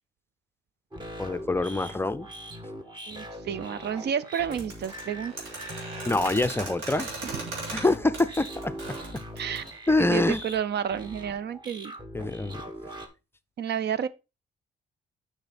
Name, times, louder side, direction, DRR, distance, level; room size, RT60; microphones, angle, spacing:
sound 1, 0.9-13.1, equal, 20° right, 1.6 m, -41 dB
voice 1, 1.2-2.3 6.1-7.1 7.7-9.2 9.9-10.4 12.1-12.6, left 2 dB, 10° left, 0.5 m, -25 dB
voice 2, 3.1-5.3 7.2-7.3 9.4-9.6 10.1-11.9 13.6-14.1, right 8 dB, 60° right, 0.5 m, -30 dB
sound 2, 4.5-9.8, right 3 dB, 85° right, 3.0 m, -38 dB
6.8 x 5.9 x 4.1 m
cardioid pair, 90°, 20 cm